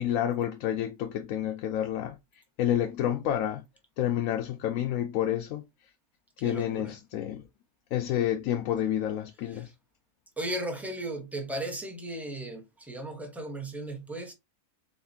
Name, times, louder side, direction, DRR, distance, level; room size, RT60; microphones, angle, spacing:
voice 1, 0.0-2.2 2.6-3.6 4.0-5.6 6.4-7.4 7.9-9.7, left 11 dB, 80° left, 1.0 m, -29 dB
voice 2, 6.4-6.9 9.5-9.7 10.4-14.3, right 1 dB, ahead, 0.8 m, -36 dB
4.1 x 3.8 x 2.7 m
omnidirectional pair, 1.4 m